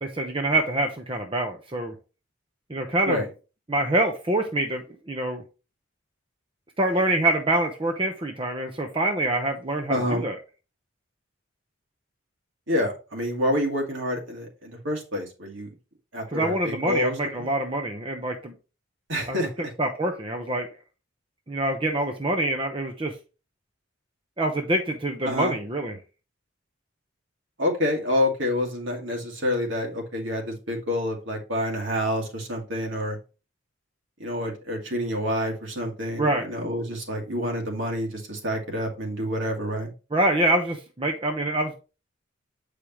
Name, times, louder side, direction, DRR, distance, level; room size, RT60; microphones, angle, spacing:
voice 1, 0.0-1.9 2.7-3.2 3.7-5.4 6.8-10.4 16.3-18.5 19.3-19.4 19.8-20.7 21.5-23.2 24.4-25.9 36.2-36.5 40.1-41.7, right 1 dB, 25° right, 4 dB, 0.7 m, -25 dB
voice 2, 9.9-10.2 12.7-15.7 16.1-17.2 19.1-19.7 25.2-25.6 27.6-33.2 34.2-39.9, left 1 dB, 65° right, 1 dB, 2.1 m, -28 dB
8.7 x 4.9 x 3.0 m, 0.32 s
head